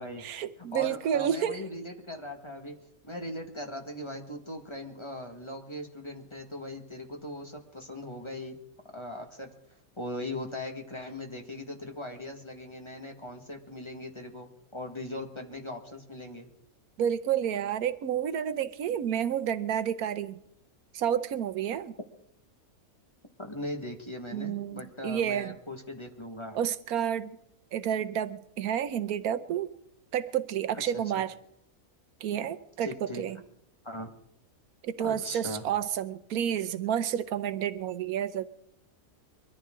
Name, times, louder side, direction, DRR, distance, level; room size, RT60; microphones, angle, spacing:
voice 1, 0.2-1.6 17.0-20.4 20.9-21.9 24.3-25.5 26.5-27.3 27.7-29.7 30.1-31.3 32.2-33.4 34.8-38.5, right 9 dB, 80° right, 12 dB, 1.2 m, -30 dB
voice 2, 0.7-2.8 3.0-8.6 8.9-9.5 10.0-16.5 23.4-26.6 30.7-31.0 32.8-33.2 33.8-34.1 35.0-35.6, left 1 dB, 20° left, 3 dB, 1.6 m, -39 dB
23.0 x 14.0 x 3.8 m, 0.72 s
omnidirectional pair, 1.5 m